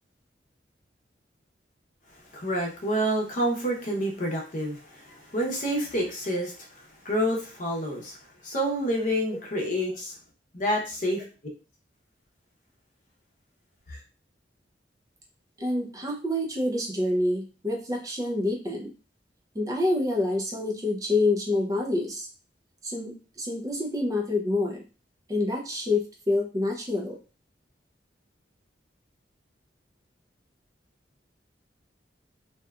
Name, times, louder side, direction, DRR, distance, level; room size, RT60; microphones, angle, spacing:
voice 1, 2.3-8.2 8.4-10.2 10.5-11.2 13.9-14.0, equal, 45° left, 0.7 m, -28 dB
voice 2, 15.6-18.9 19.5-22.3 22.8-24.8 25.3-27.2, left 2 dB, 20° right, 0.4 m, -27 dB
2.7 x 2.2 x 2.3 m
head